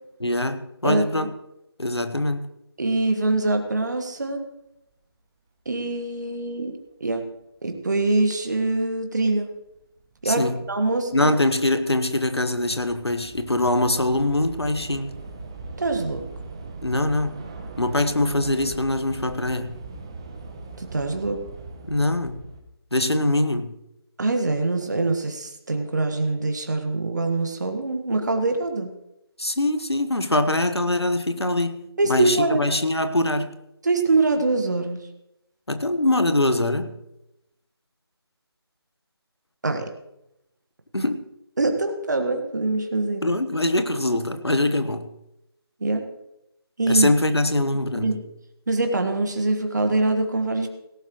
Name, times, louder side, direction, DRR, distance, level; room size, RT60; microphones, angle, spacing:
voice 1, 0.2-1.3 1.8-2.5 10.2-10.6 11.1-15.1 16.8-17.4 17.8-19.8 21.9-22.4 22.9-23.7 29.4-33.5 35.7-36.9 40.9-41.2 43.2-45.1 46.9-48.2, left 1 dB, 80° left, 9 dB, 1.2 m, -23 dB
voice 2, 0.8-1.3 2.8-4.4 5.6-7.3 7.6-9.5 10.2-11.3 15.8-16.2 20.8-21.4 24.2-28.9 32.0-32.6 33.8-35.1 39.6-39.9 41.6-43.3 45.8-46.1 46.8-47.1 47.9-48.2 48.7-50.7, right 2 dB, 45° right, 6 dB, 1.5 m, -24 dB
Train / Subway metro underground, 9.5-9.8 10.0-22.6, right 3 dB, 10° right, 0.6 m, -40 dB
17.5 x 11.0 x 3.1 m, 0.86 s
figure-of-eight pair, 160°, 13 cm